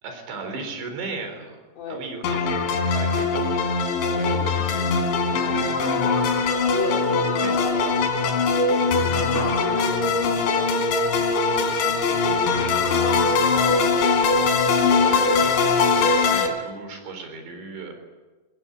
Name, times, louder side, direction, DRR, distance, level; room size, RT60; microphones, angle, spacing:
voice 1, 0.0-1.6 1.9-5.3 5.8-6.2 7.4-7.5 15.0-17.9, right 4 dB, 75° right, 5 dB, 6.3 m, -36 dB
sound 1, 2.2-16.5, left 4 dB, 90° left, 4.9 m, -21 dB
voice 2, 2.4-2.8 4.1-4.8 5.3-5.7 6.7-10.8 11.3-14.4 15.2-15.4, left 5 dB, 65° left, 2 dB, 4.4 m, -36 dB
23.0 x 18.5 x 9.3 m, 1.3 s
omnidirectional pair, 5.2 m